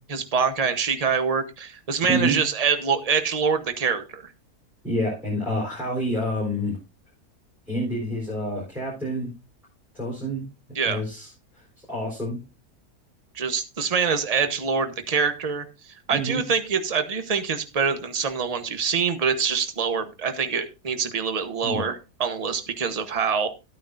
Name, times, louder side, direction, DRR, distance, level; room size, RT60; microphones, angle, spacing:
voice 1, 0.1-4.3 10.7-11.0 13.3-23.5, right 6 dB, 30° right, 9 dB, 0.9 m, -25 dB
voice 2, 2.1-2.4 4.8-6.8 7.7-9.3 9.9-10.4 10.8-11.6 11.9-12.4 16.1-16.4 21.6-21.8, equal, ahead, -4 dB, 4.4 m, -28 dB
13.5 x 9.3 x 2.5 m, 0.27 s
omnidirectional pair, 1.7 m